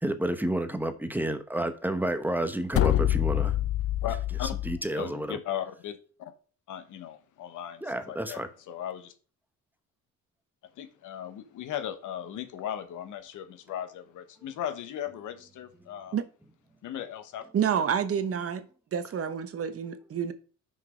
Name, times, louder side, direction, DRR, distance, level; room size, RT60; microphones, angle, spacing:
voice 1, 0.0-3.5 4.6-5.4 7.8-8.5, right 1 dB, 5° right, 1.0 m, -30 dB
sound 1, 2.7-4.8, left 13 dB, 50° left, 0.6 m, -26 dB
voice 2, 4.0-4.5 5.0-6.3 6.7-9.1 10.8-16.2 16.8-17.4, left 10 dB, 80° left, 1.2 m, -37 dB
voice 3, 17.5-20.3, right 8 dB, 50° right, 1.0 m, -29 dB
6.1 x 5.5 x 5.0 m
cardioid pair, 90°, 30 cm